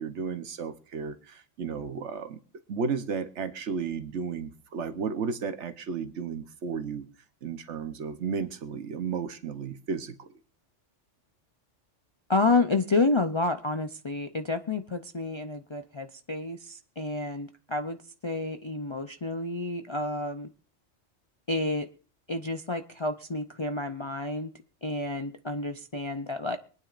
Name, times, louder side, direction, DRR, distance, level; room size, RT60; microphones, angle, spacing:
voice 1, 0.0-2.4 2.7-7.1 7.4-10.3, right 5 dB, 70° right, 10 dB, 1.2 m, -33 dB
voice 2, 12.3-18.0 18.2-20.5 21.5-21.9 22.3-24.5 24.8-26.6, left 3 dB, 40° left, 6 dB, 0.4 m, -29 dB
24.0 x 9.4 x 2.5 m, 0.39 s
omnidirectional pair, 1.2 m